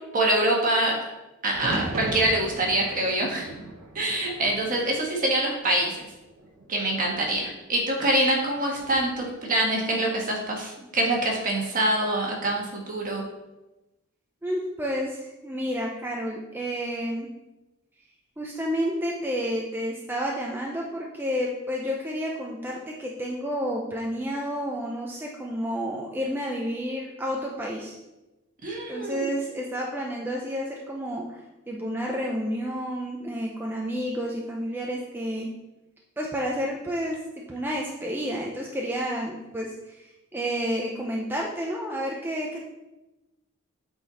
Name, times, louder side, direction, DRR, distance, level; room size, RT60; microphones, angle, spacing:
voice 1, 0.1-1.0 1.4-3.5 3.9-6.1 6.7-13.3 28.6-29.3, right 1 dB, 40° right, -1 dB, 1.4 m, -25 dB
sound 1, 1.5-5.6 5.9-6.7 8.6-9.1, right 1 dB, 70° right, 1.0 m, -37 dB
voice 2, 14.4-17.3 18.4-28.0 28.9-35.5 36.2-37.2 37.5-42.6, equal, 10° right, -2 dB, 0.6 m, -30 dB
8.0 x 4.1 x 4.1 m, 1.0 s
head